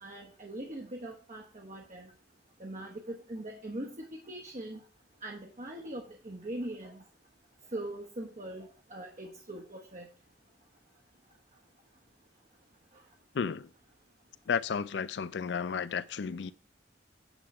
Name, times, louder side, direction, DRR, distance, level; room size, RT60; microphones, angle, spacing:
voice 1, 0.0-2.1 2.6-4.0 4.3-4.8 5.2-7.0 7.7-10.1, right 1 dB, 40° right, 1.0 m, -41 dB
voice 2, 13.3-13.7 14.5-16.5, left 6 dB, 75° left, 0.4 m, -32 dB
9.0 x 3.6 x 5.4 m
head